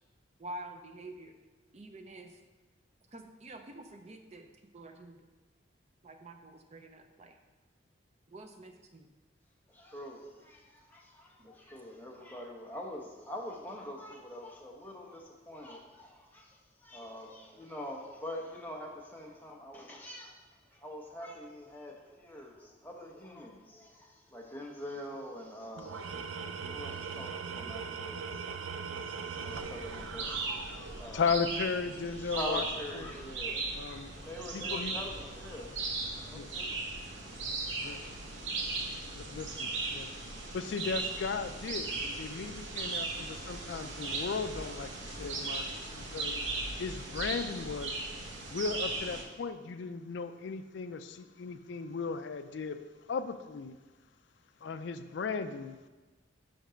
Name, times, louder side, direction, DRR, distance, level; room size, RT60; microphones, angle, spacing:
voice 1, 0.4-1.3 1.7-2.4 3.1-4.5 4.7-5.2 6.0-7.4 8.3-9.1 11.4-11.5 25.1-25.2, right 1 dB, 35° right, 5 dB, 0.5 m, -47 dB
voice 2, 9.7-28.6 28.9-31.3 32.2-36.7, left 1 dB, 10° left, -1 dB, 0.8 m, -45 dB
Tools, 25.8-31.1, right 5 dB, 90° right, 0.5 m, -40 dB
sound 1, 29.5-49.2, right 3 dB, 70° right, 1.0 m, -38 dB
voice 3, 30.7-32.6 33.0-33.1 33.7-34.1 34.5-35.0 36.3-36.5 37.8-38.0 39.1-40.1 40.5-46.3 46.8-47.9 48.5-52.8 53.1-53.8 54.6-55.8, left 5 dB, 60° left, 11 dB, 0.4 m, -36 dB
6.0 x 5.2 x 5.0 m, 1.2 s
head